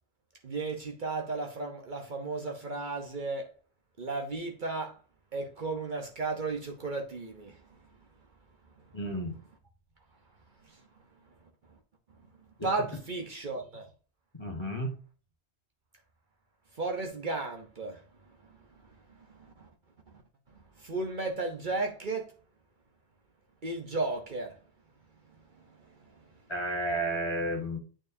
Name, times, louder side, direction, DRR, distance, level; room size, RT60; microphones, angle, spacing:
voice 1, 0.4-3.6 4.0-5.0 5.3-7.8 8.8-8.9 10.6-10.8 12.6-13.9 16.7-19.7 20.1-20.2 20.8-22.4 23.6-24.6 25.5-26.3, right 3 dB, 50° right, 1.0 m, -35 dB
voice 2, 8.9-9.4 12.6-12.7 14.4-14.9 26.5-27.8, right 1 dB, 25° left, 1.5 m, -32 dB
8.8 x 4.6 x 2.7 m
omnidirectional pair, 1.1 m